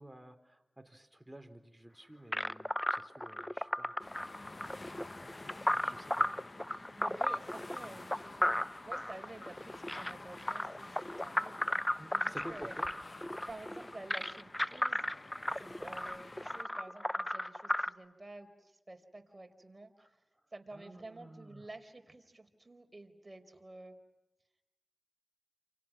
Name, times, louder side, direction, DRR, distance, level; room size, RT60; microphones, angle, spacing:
voice 1, 0.0-3.9 4.5-4.7 5.8-6.3 12.0-12.9 20.0-20.1 20.7-21.7, right 1 dB, 10° right, 7 dB, 3.9 m, -51 dB
sound 1, 2.3-17.9, left 1 dB, 15° left, 0.8 m, -35 dB
sound 2, 4.0-16.6, left 2 dB, 45° left, 1.0 m, -50 dB
voice 2, 6.7-11.6 12.1-12.8 13.5-15.0 15.5-19.9 20.5-24.0, right 2 dB, 35° right, 5 dB, 4.5 m, -51 dB
29.0 x 28.5 x 6.2 m, 0.96 s
cardioid pair, 40°, 0 cm